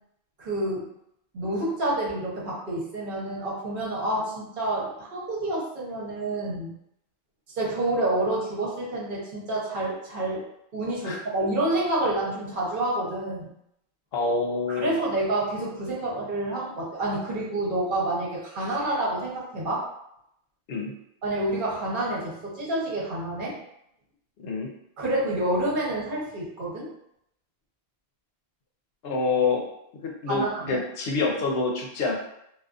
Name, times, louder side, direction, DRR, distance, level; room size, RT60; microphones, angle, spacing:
voice 1, 0.4-0.9 1.3-6.7 7.5-10.4 10.7-13.5 14.7-19.8 21.2-23.6 25.0-26.9 30.3-30.8, right 1 dB, 55° right, -5 dB, 1.0 m, -28 dB
voice 2, 14.1-14.9 20.7-20.9 24.4-24.7 29.0-29.6 30.0-32.1, left 4 dB, 75° left, 0 dB, 0.8 m, -26 dB
2.5 x 2.3 x 2.3 m, 0.76 s
omnidirectional pair, 1.1 m